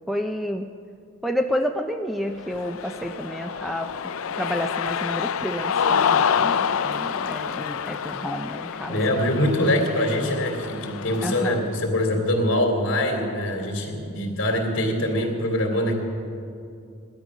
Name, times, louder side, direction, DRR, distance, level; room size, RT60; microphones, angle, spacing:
voice 1, 0.1-0.7 1.2-3.9 4.4-9.0 11.2-11.6, equal, ahead, 5 dB, 0.4 m, -30 dB
Cheering, 2.4-11.6, left 7 dB, 75° left, 0.5 m, -27 dB
voice 2, 8.9-15.9, left 1 dB, 60° left, 2 dB, 2.9 m, -23 dB
17.5 x 12.0 x 6.1 m, 2.5 s
head